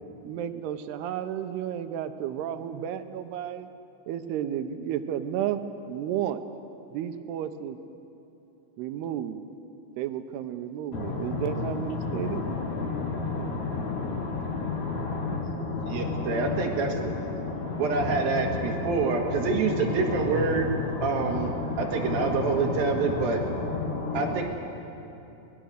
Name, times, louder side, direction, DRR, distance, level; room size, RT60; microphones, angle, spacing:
voice 1, 0.2-3.7 4.1-5.6 5.9-6.4 6.9-7.8 8.8-9.4 10.0-12.5, right 10 dB, 85° right, 10 dB, 2.8 m, -32 dB
voice 2, 10.9-24.4, left 4 dB, 55° left, 1 dB, 2.5 m, -31 dB
voice 3, 15.9-17.1 17.8-20.7 21.0-23.4 24.1-24.5, right 4 dB, 70° right, 2 dB, 3.4 m, -27 dB
25.5 x 19.5 x 6.5 m, 2.8 s
omnidirectional pair, 4.6 m